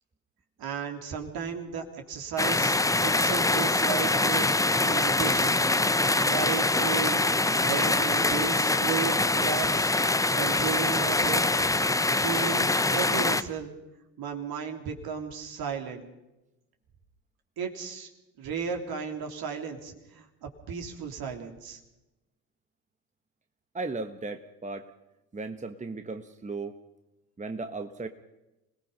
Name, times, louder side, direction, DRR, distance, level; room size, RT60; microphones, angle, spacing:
voice 1, 0.6-5.6 6.2-7.3 7.6-9.9 10.3-11.7 12.2-13.7 14.2-16.1 17.6-18.1 18.4-21.8, right 6 dB, 55° right, 4 dB, 3.4 m, -34 dB
sound 1, 2.4-13.4, left 2 dB, 10° left, 0.8 m, -24 dB
voice 2, 23.7-24.9 25.3-26.8 27.4-28.1, right 3 dB, 15° right, 7 dB, 1.4 m, -36 dB
26.0 x 19.0 x 5.6 m, 0.97 s
hypercardioid pair, 60°, 43 cm